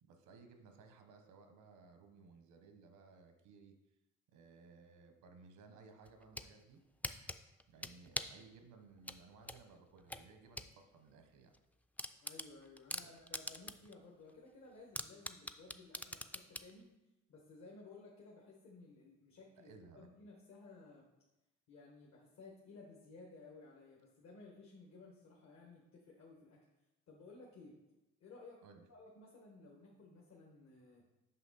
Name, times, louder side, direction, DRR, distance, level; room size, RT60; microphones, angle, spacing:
voice 1, 0.0-3.8 4.3-6.8 7.7-11.6 13.0-13.1 19.6-20.1 28.6-28.8, right 4 dB, 90° right, 6 dB, 1.0 m, -60 dB
sound 1, 6.1-6.5 7.0-8.4 9.1-10.7 11.1-11.2 11.5-11.6 12.0-13.9 14.3-14.4 15.0-16.7, left 1 dB, 5° left, 0.3 m, -43 dB
voice 2, 12.2-16.9 17.3-21.1 21.7-26.6 27.1-27.7 28.2-28.6 28.9-31.0, left 3 dB, 65° left, -2 dB, 1.4 m, -57 dB
5.7 x 5.7 x 4.1 m, 0.95 s
cardioid pair, 90°, 30 cm